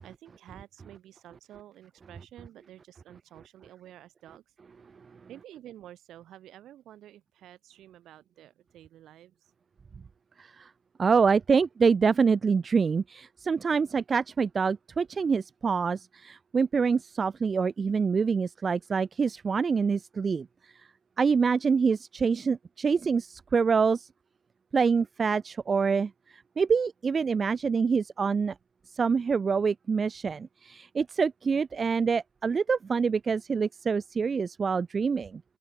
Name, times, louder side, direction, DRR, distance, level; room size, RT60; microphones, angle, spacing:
voice 1, 0.0-4.5 5.3-9.5, right 12 dB, 45° right, 6.8 m, -50 dB
voice 2, 10.4-10.7 11.0-20.9 21.2-24.1 24.7-28.5 28.9-35.4, right 5 dB, 20° right, 0.5 m, -26 dB
open air
supercardioid pair, 115°, 0 cm